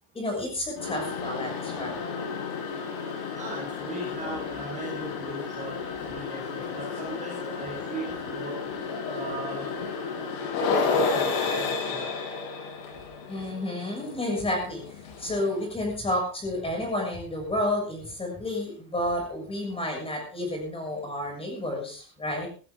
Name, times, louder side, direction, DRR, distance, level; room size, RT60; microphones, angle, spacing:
voice 1, 0.1-2.0 13.3-22.5, left 1 dB, 15° left, 1 dB, 6.9 m, -31 dB
sound 1, 0.8-15.7, left 4 dB, 65° left, 7.5 m, -32 dB
voice 2, 3.3-8.6 9.1-9.7 10.6-12.1, right 2 dB, 15° right, -1 dB, 4.8 m, -38 dB
16.5 x 16.5 x 3.7 m, 0.38 s
cardioid pair, 165°, 43 cm